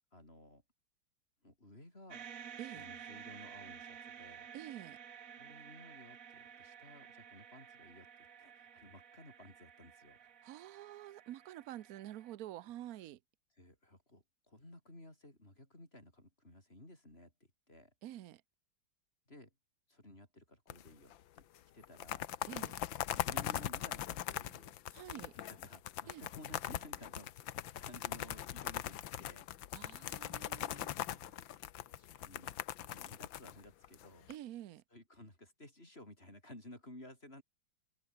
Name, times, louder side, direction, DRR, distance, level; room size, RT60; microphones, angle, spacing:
voice 1, 0.1-0.6 1.4-2.3 2.7-4.5 5.4-8.1 8.4-10.2 13.6-17.3 17.7-17.9 19.3-19.5 19.9-21.5 21.7-22.3 23.1-24.7 25.3-27.3 27.6-29.5 30.8-32.5 32.8-34.3 34.9-37.4, left 1 dB, 25° left, 7.0 m, -56 dB
sound 1, 2.1-12.3, right 8 dB, 45° right, 1.3 m, -53 dB
voice 2, 4.5-5.0 10.4-13.2 18.0-18.4 22.5-22.8 24.9-25.3 26.1-26.3 29.7-30.9 34.3-34.8, right 13 dB, 70° right, 0.9 m, -48 dB
sound 2, 20.7-21.1 21.4-21.5 21.8-34.3, left 12 dB, 70° left, 1.6 m, -41 dB
omnidirectional pair, 2.3 m